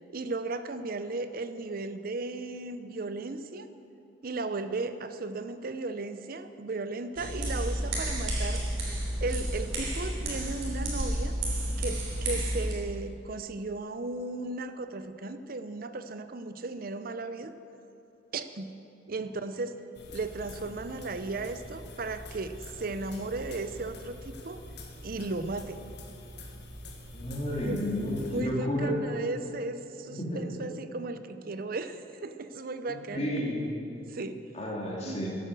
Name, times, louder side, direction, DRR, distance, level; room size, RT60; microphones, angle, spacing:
voice 1, 0.1-3.7 4.2-8.6 9.2-11.3 11.8-17.5 18.3-18.7 19.1-19.8 20.1-24.6 25.0-25.8 27.5-27.8 28.3-33.4 34.1-34.4 35.1-35.2, right 3 dB, 50° right, 11 dB, 0.6 m, -35 dB
sound 1, 7.2-12.7, right 1 dB, 90° right, 3.2 m, -31 dB
sound 2, 19.9-28.4, left 1 dB, 60° left, 1.6 m, -45 dB
voice 2, 27.1-29.0 30.2-30.4 33.1-33.6 34.5-35.4, equal, 35° left, -3 dB, 2.5 m, -31 dB
12.5 x 9.3 x 7.5 m, 2.9 s
head